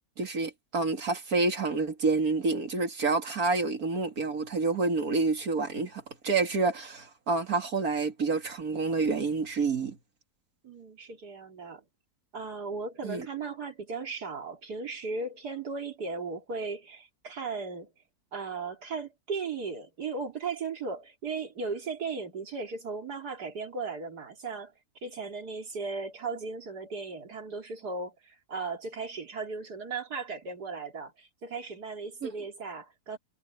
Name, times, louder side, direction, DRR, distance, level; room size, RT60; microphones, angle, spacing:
voice 1, 0.2-10.0 13.0-13.3 32.2-32.3, right 3 dB, 65° right, 2.6 m, -28 dB
voice 2, 10.6-11.8 12.3-17.9 18.3-24.7 25.0-33.2, right 4 dB, 85° right, 3.3 m, -36 dB
omnidirectional pair, 1.7 m